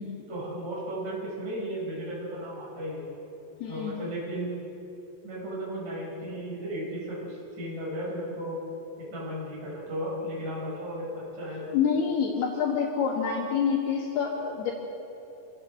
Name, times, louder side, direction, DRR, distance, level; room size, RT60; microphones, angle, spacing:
voice 1, 0.3-3.1 3.6-4.5 5.2-8.6 9.0-11.8, equal, 50° right, -7 dB, 7.8 m, -35 dB
voice 2, 3.6-4.0 11.7-14.7, left 6 dB, 75° left, -1 dB, 3.6 m, -27 dB
26.5 x 15.0 x 7.9 m, 2.8 s
omnidirectional pair, 4.8 m